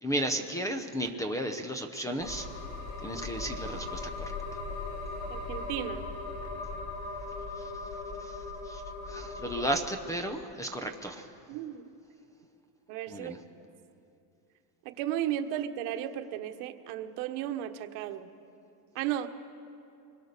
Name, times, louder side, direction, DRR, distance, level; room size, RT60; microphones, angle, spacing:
voice 1, 0.0-2.5 3.0-4.3 7.6-7.7 8.2-8.8 9.1-11.3 13.1-13.4, right 1 dB, 5° left, 7 dB, 0.6 m, -34 dB
sound 1, 2.2-9.8, left 3 dB, 80° left, 3.0 m, -38 dB
voice 2, 5.3-6.1 11.5-11.9 12.9-13.3 14.8-18.3 18.9-19.3, right 11 dB, 80° right, 7 dB, 1.3 m, -34 dB
24.5 x 21.5 x 6.7 m, 2.7 s
cardioid pair, 175°, 45 cm